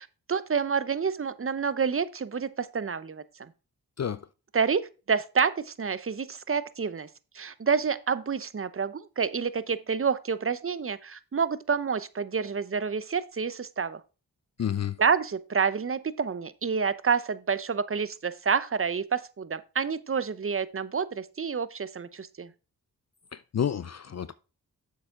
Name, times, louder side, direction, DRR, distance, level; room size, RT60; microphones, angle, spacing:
voice 1, 0.0-3.5 4.5-4.8 5.1-7.1 7.3-14.0 15.0-22.5, right 6 dB, 35° right, 0.8 m, -28 dB
voice 2, 14.6-15.0 23.3-24.4, left 9 dB, 45° left, 0.5 m, -30 dB
7.8 x 6.8 x 3.8 m
cardioid pair, 45°, 39 cm